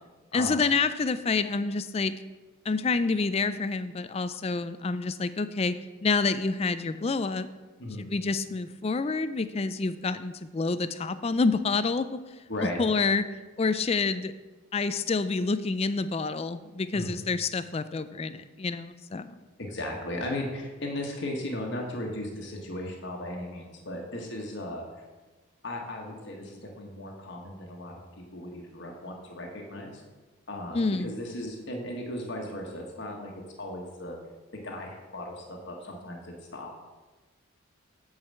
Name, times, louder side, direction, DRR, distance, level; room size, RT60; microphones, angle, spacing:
voice 1, 0.3-2.1 2.7-5.8 6.0-7.5 8.0-12.2 12.8-13.2 13.6-14.3 14.7-19.3 30.7-31.1, left 4 dB, 30° left, 12 dB, 0.4 m, -28 dB
voice 2, 19.6-24.9 25.6-27.9 28.3-30.0 30.5-33.3 33.6-34.2 34.5-36.7, left 1 dB, 55° left, 0 dB, 1.4 m, -36 dB
8.8 x 4.8 x 7.5 m, 1.3 s
head